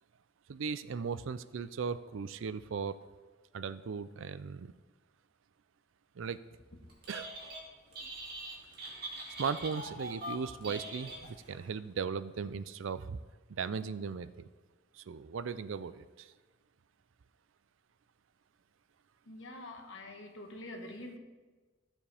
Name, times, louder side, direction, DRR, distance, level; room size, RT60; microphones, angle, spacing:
voice 1, 0.5-3.0 3.5-4.7 6.2-6.4 7.1-7.3 9.4-13.2 13.5-14.5 14.9-16.3, right 5 dB, 80° right, 14 dB, 0.4 m, -37 dB
Telephone, 6.9-7.6 7.9-11.6, right 1 dB, 50° right, 2.2 m, -43 dB
voice 2, 19.3-21.2, left 1 dB, 75° left, 3 dB, 1.4 m, -45 dB
15.0 x 7.2 x 3.4 m, 1.3 s
head